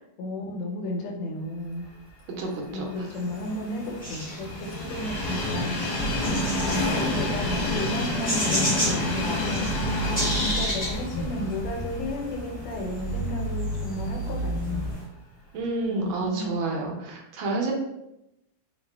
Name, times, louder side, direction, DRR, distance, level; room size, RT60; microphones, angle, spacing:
voice 1, 0.0-1.8 2.7-5.8 6.3-9.9 10.1-14.8 15.9-16.7, left 1 dB, 85° left, 0 dB, 1.7 m, -33 dB
voice 2, 2.4-3.2 15.5-17.7, right 2 dB, 75° right, 0 dB, 1.4 m, -29 dB
Train, 2.8-12.9 13.4-13.5 14.6-14.7, left 1 dB, 55° left, 1.3 m, -29 dB
sound 1, 3.2-15.0, equal, 10° left, 0.5 m, -35 dB
sound 2, 6.0-14.9, right 1 dB, 30° left, 1.5 m, -33 dB
3.6 x 2.6 x 3.3 m, 0.88 s
omnidirectional pair, 2.4 m